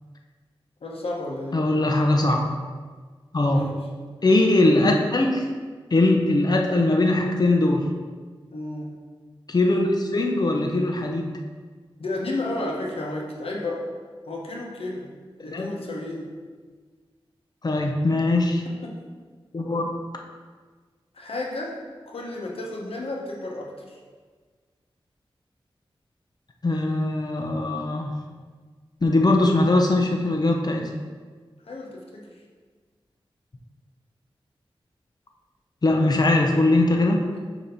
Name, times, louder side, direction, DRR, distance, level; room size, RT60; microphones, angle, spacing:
voice 1, 0.8-1.6 3.5-3.8 8.5-9.0 12.0-13.9 14.3-15.1 15.4-16.3 18.8-19.0 21.1-24.0 31.6-32.3, left 2 dB, 85° left, -1 dB, 1.1 m, -32 dB
voice 2, 1.5-2.4 3.3-3.7 4.2-5.5 5.9-7.9 9.5-11.4 15.5-15.7 17.6-18.6 19.5-20.0 26.6-28.1 29.0-30.9 35.8-37.2, left 2 dB, 45° left, 2 dB, 0.7 m, -21 dB
6.9 x 3.0 x 5.2 m, 1.5 s
wide cardioid pair, 65°, 10 cm